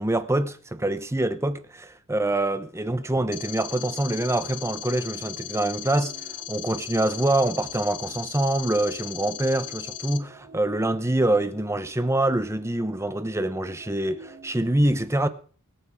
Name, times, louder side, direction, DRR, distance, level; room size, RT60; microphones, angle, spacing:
voice 1, 0.0-6.2 6.5-15.3, right 1 dB, 10° right, 0.8 m, -25 dB
sound 1, 2.9-14.8, right 3 dB, 55° right, 3.3 m, -50 dB
sound 2, 3.3-10.2, left 12 dB, 70° left, 1.0 m, -37 dB
23.5 x 9.6 x 3.6 m
head